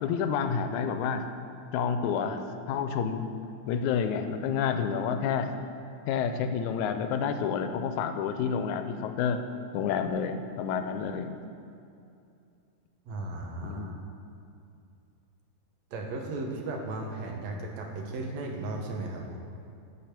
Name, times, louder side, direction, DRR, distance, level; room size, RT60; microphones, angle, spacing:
voice 1, 0.0-1.2 1.7-2.4 2.7-3.3 3.7-5.5 6.1-9.4 9.7-11.3 13.6-14.0, left 7 dB, 85° left, 8 dB, 2.0 m, -29 dB
voice 2, 13.1-14.0 15.9-19.4, right 2 dB, 70° right, 1 dB, 2.1 m, -35 dB
7.6 x 6.9 x 5.9 m, 2.5 s
omnidirectional pair, 3.4 m